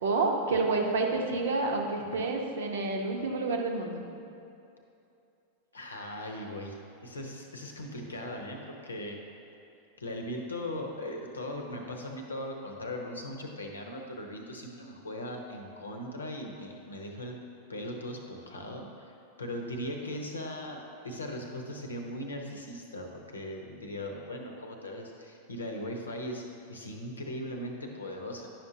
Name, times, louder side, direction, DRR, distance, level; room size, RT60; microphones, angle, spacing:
voice 1, 0.0-4.0, right 3 dB, 60° right, 2 dB, 0.8 m, -29 dB
voice 2, 5.7-9.2 10.0-17.3 17.7-19.1 19.4-26.4 26.7-28.5, left 1 dB, 75° left, 2 dB, 0.8 m, -39 dB
10.5 x 5.8 x 2.8 m, 2.7 s
figure-of-eight pair, 90°, 0 cm